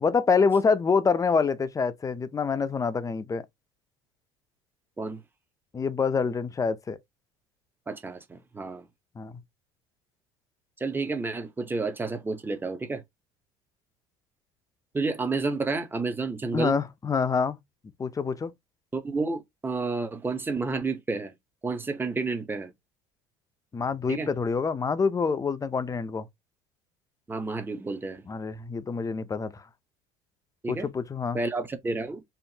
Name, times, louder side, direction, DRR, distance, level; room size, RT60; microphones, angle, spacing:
voice 1, 0.0-3.4 5.7-7.0 9.2-9.4 16.5-17.6 18.0-18.5 23.7-26.3 28.3-29.6 30.7-31.4, left 5 dB, 20° left, 0.5 m, -26 dB
voice 2, 7.9-8.9 10.8-13.0 14.9-16.8 18.9-21.3 21.6-22.7 24.1-24.3 27.3-28.2 30.6-30.9 31.3-32.2, right 3 dB, 15° right, 0.8 m, -30 dB
4.4 x 2.5 x 2.8 m
supercardioid pair, 95°, 16 cm